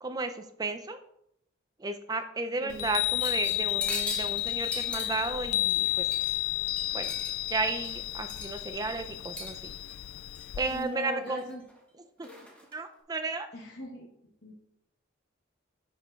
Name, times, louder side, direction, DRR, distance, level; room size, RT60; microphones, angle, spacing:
voice 1, 0.0-1.0 1.8-6.1 6.9-7.1 7.5-9.7 10.6-11.4 12.0-12.3 12.7-13.5, right 3 dB, 20° right, 8 dB, 0.4 m, -33 dB
Chime, 2.7-10.8, left 17 dB, 85° left, 0.3 m, -32 dB
sound 1, 3.2-6.5 6.8-8.8 9.3-9.9 10.3-10.9 11.3-11.8 12.2-12.8, left 1 dB, 5° left, 1.1 m, -41 dB
voice 2, 10.7-11.6 12.2-12.5 13.5-14.1 14.4-14.5, left 1 dB, 55° left, -2 dB, 1.2 m, -40 dB
10.5 x 5.6 x 2.4 m, 0.79 s
head